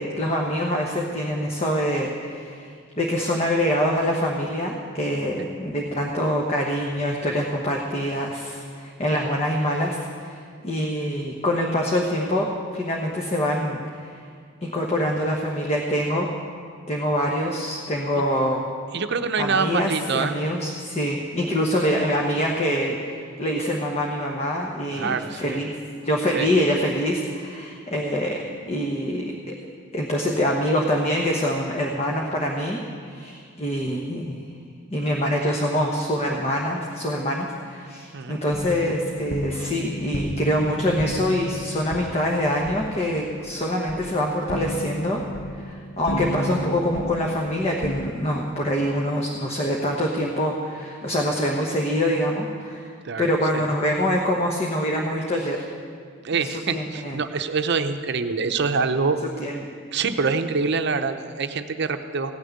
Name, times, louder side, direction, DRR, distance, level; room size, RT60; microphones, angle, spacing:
voice 1, 0.0-14.2 14.6-16.3 16.9-18.7 19.4-25.8 26.0-29.5 29.9-34.4 34.9-45.2 45.5-52.9 53.2-55.6 56.3-57.2 59.4-59.7, equal, 30° left, -1 dB, 1.1 m, -25 dB
voice 2, 18.9-20.3 24.9-25.6 26.3-26.5 38.1-38.4 53.0-53.6 56.2-59.2 59.9-62.3, right 4 dB, 60° right, 8 dB, 0.7 m, -25 dB
sound 1, 38.5-48.1, left 1 dB, 50° left, 0.8 m, -33 dB
16.0 x 6.5 x 9.4 m, 2.1 s
head